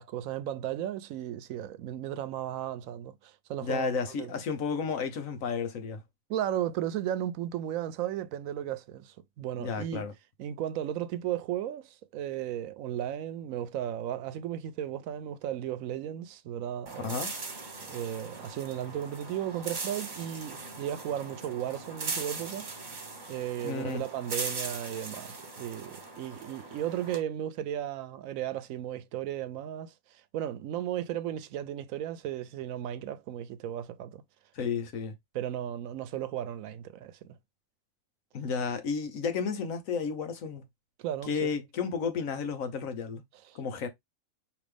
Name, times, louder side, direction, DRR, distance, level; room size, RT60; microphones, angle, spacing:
voice 1, 0.0-3.9 4.2-4.3 6.3-10.0 10.4-17.3 17.8-23.0 23.3-34.2 35.3-37.3 41.0-41.5 43.3-43.6, right 11 dB, 80° right, 1.0 m, -35 dB
voice 2, 3.6-6.0 9.6-10.1 17.0-17.3 23.6-24.0 34.5-35.1 38.3-40.6 41.3-43.2 43.5-43.9, left 5 dB, 75° left, 1.4 m, -32 dB
sound 1, 16.9-27.2, right 3 dB, 40° right, 1.2 m, -40 dB
5.0 x 3.1 x 3.3 m
omnidirectional pair, 1.4 m